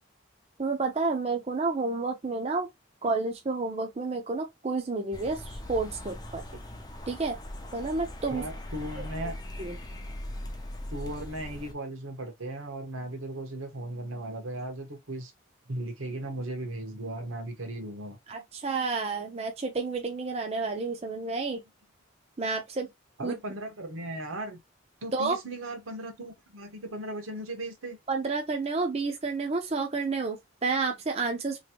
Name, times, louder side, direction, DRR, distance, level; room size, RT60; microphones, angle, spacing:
voice 1, 0.6-2.7 3.0-6.4 7.1-7.4 7.7-8.5 9.0-9.1 9.6-9.8 18.3-21.6 22.4-22.9 23.2-23.3 25.1-25.4 28.1-31.6, right 3 dB, 30° right, 0.5 m, -30 dB
sound 1, 5.1-11.7, left 1 dB, 20° left, 0.5 m, -40 dB
voice 2, 8.3-9.3 10.9-15.3 15.7-18.2 23.2-24.6 25.0-28.0, right 1 dB, 90° right, 1.1 m, -37 dB
3.1 x 2.5 x 2.8 m
head